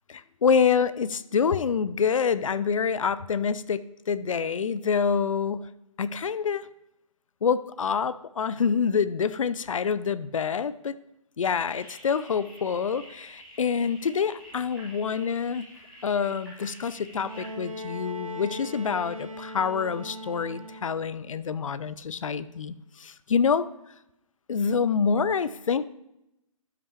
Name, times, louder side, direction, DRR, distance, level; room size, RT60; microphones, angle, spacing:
voice 1, 0.1-5.7 6.0-6.7 7.4-10.9 11.4-15.7 16.0-23.7 24.5-25.9, left 6 dB, 65° left, 16 dB, 0.5 m, -26 dB
sound 1, 11.6-17.5, equal, 5° left, 3.2 m, -49 dB
Bowed string instrument, 17.1-21.2 22.4-22.5, left 1 dB, 70° right, 1.2 m, -39 dB
13.0 x 7.5 x 3.3 m, 0.87 s
figure-of-eight pair, 140°, 18 cm